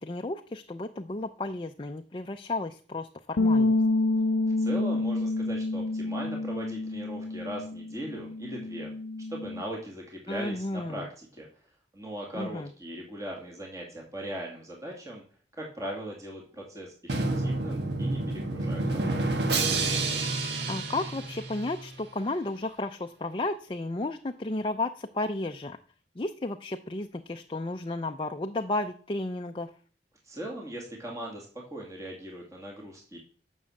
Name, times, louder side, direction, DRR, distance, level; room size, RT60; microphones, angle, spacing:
voice 1, 0.0-3.8 10.3-11.1 12.3-12.7 20.7-25.8 26.2-29.7, left 2 dB, 30° left, 5 dB, 0.5 m, -33 dB
sound 1, 3.4-9.6, left 2 dB, 80° left, 0.5 m, -28 dB
voice 2, 4.6-8.9 9.3-11.5 11.9-15.2 15.6-19.3 30.2-33.2, right 1 dB, 20° right, -1 dB, 2.2 m, -39 dB
Drum, 17.1-21.9, right 2 dB, 75° right, 1.7 m, -29 dB
9.6 x 6.3 x 7.1 m, 0.43 s
head